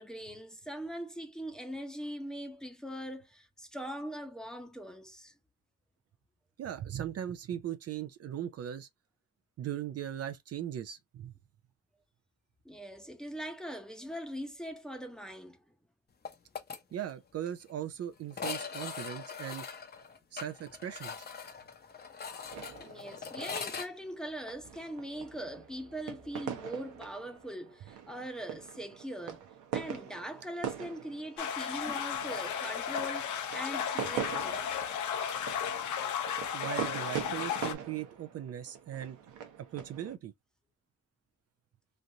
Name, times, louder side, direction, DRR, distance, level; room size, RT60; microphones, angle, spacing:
voice 1, 0.0-5.3 12.6-15.6 22.8-29.4 29.7-34.8, equal, ahead, 0.8 m, -41 dB
voice 2, 6.6-8.9 9.6-11.3 16.9-19.6 20.3-21.3 36.5-39.2 39.7-40.3, right 10 dB, 55° right, 0.5 m, -39 dB
sound 1, 16.2-16.8 17.1-17.2 17.5-17.6 18.3-23.9, left 5 dB, 35° left, 0.7 m, -41 dB
sound 2, 22.5-40.2, right 9 dB, 80° right, 0.9 m, -43 dB
sound 3, 31.4-37.7, left 8 dB, 75° left, 0.8 m, -34 dB
3.2 x 2.5 x 2.7 m
cardioid pair, 90°, 30 cm